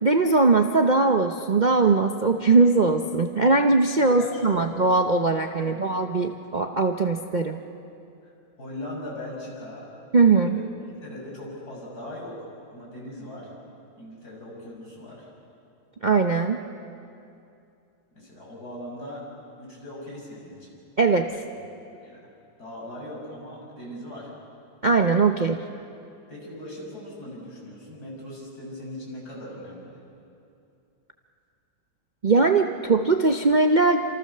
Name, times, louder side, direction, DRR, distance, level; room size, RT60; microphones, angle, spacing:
voice 1, 0.0-7.6 10.1-10.6 16.0-16.6 21.0-21.3 24.8-25.6 32.2-34.0, right 3 dB, 85° right, 5 dB, 0.4 m, -20 dB
voice 2, 4.1-4.7 5.6-5.9 8.2-8.3 8.6-9.9 10.3-10.6 11.0-13.5 14.0-15.3 18.2-19.2 19.6-20.8 21.3-21.5 22.0-22.1 22.6-24.3 26.3-30.0, left 1 dB, 50° left, -3 dB, 7.0 m, -39 dB
28.0 x 27.0 x 6.7 m, 2.6 s
omnidirectional pair, 2.1 m